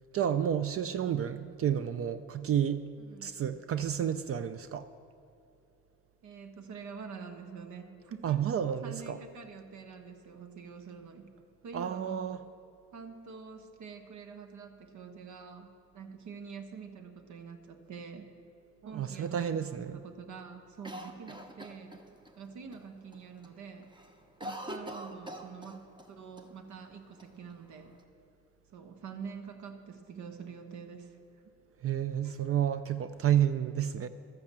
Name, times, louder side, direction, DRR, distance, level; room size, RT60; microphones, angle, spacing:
voice 1, 0.1-2.9 3.2-4.9 8.2-9.2 11.7-12.4 18.8-20.0 31.8-34.1, right 9 dB, 50° right, 13 dB, 0.4 m, -30 dB
voice 2, 3.0-3.3 6.2-8.4 8.8-11.3 11.6-12.4 12.9-18.3 18.8-22.0 22.3-23.9 24.4-27.9 28.7-31.2 31.4-31.5 32.2-32.4, right 6 dB, 70° right, 7 dB, 1.2 m, -46 dB
Cough, 20.8-22.3 22.7-22.8 23.1-23.5 23.8-26.1 26.4-26.5 27.2-28.0, equal, 15° right, 1.0 m, -43 dB
13.0 x 6.5 x 7.4 m, 2.7 s
cardioid pair, 90°, 30 cm